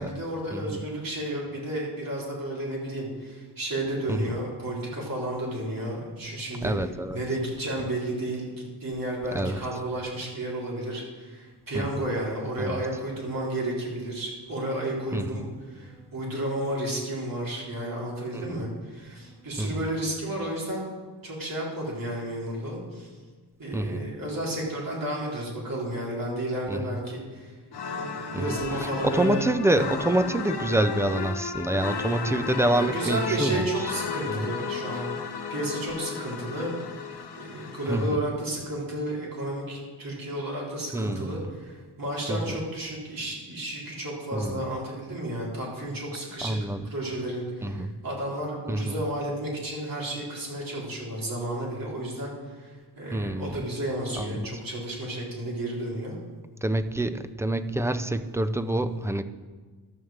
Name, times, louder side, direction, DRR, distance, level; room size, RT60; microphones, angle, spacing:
voice 1, 0.0-6.7 7.1-15.4 15.7-20.9 21.2-23.1 23.6-27.5 27.9-29.5 29.7-29.9 32.7-36.7 37.4-46.6 46.9-56.1, right 1 dB, 55° right, -4 dB, 3.8 m, -32 dB
voice 2, 0.5-0.9 4.1-4.2 6.6-7.2 9.3-9.6 11.7-11.9 12.6-12.8 15.1-15.5 16.0-16.1 18.3-18.6 19.2-19.7 23.7-24.0 26.7-26.9 28.3-33.9 34.3-34.5 37.9-38.2 40.9-41.5 42.3-42.4 44.3-44.6 46.4-46.9 47.6-47.9 48.7-49.0 53.1-53.5 54.2-54.5 56.6-59.2, right 1 dB, 5° right, 11 dB, 0.4 m, -27 dB
sound 1, 27.7-38.1, left 5 dB, 65° left, 1.1 m, -34 dB
12.5 x 6.5 x 7.3 m, 1.5 s
wide cardioid pair, 150°, 42 cm